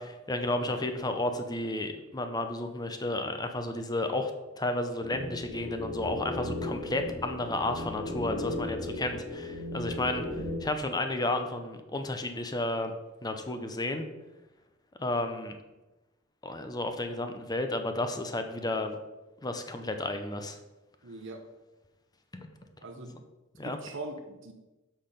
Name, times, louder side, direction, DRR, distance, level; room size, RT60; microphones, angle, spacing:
voice 1, 0.0-4.3 4.6-12.9 13.2-14.1 15.0-15.6 16.4-19.0 19.4-20.6 22.3-22.5 23.6-23.8, left 2 dB, 20° left, 7 dB, 0.7 m, -32 dB
sound 1, 5.0-10.6, left 1 dB, 35° left, 1.9 m, -36 dB
voice 2, 21.0-21.4 22.8-23.2 23.6-24.5, right 2 dB, 65° right, 5 dB, 0.8 m, -41 dB
6.6 x 5.7 x 5.2 m, 1.1 s
head